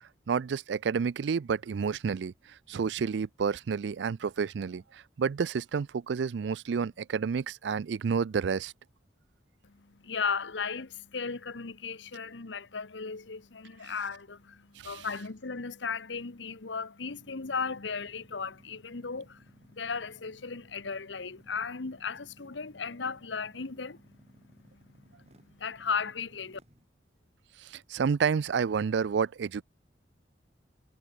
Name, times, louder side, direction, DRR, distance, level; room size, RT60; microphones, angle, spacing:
voice 1, 0.3-2.3 2.7-8.7 14.8-15.1 27.6-29.6, right 6 dB, 75° right, 0.4 m, -30 dB
voice 2, 9.6-26.6, left 5 dB, 85° left, 1.1 m, -36 dB
sound 1, 17.1-26.9, equal, 35° right, 6.5 m, -60 dB
head